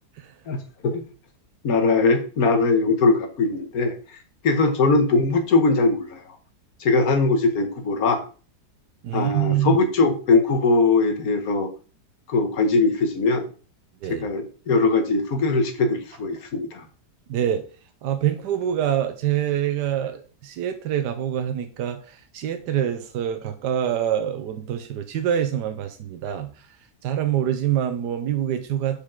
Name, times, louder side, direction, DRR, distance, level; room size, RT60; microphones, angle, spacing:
voice 1, 0.5-1.0 1.6-3.9 4.4-6.2 6.8-8.2 9.1-11.7 12.3-13.4 14.1-16.8, left 3 dB, 60° left, 6 dB, 1.5 m, -21 dB
voice 2, 9.0-9.8 14.0-14.3 17.3-17.6 18.0-26.5 27.0-29.0, right 10 dB, 80° right, 7 dB, 1.3 m, -25 dB
7.1 x 5.0 x 3.7 m, 0.37 s
omnidirectional pair, 1.8 m